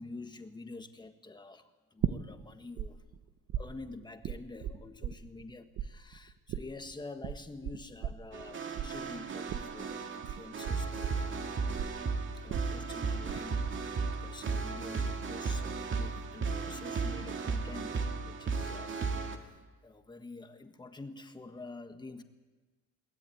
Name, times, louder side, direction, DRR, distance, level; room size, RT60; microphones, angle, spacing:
voice 1, 0.0-3.0 3.6-11.6 12.3-22.2, left 3 dB, 15° left, 8 dB, 1.5 m, -48 dB
sound 1, 2.0-2.9 3.1-5.5 5.8-13.4 13.6-14.2, right 10 dB, 65° right, 1.1 m, -37 dB
sound 2, 8.3-19.4, right 4 dB, 40° right, 2.3 m, -35 dB
22.5 x 19.0 x 9.3 m, 1.3 s
cardioid pair, 150°, 29 cm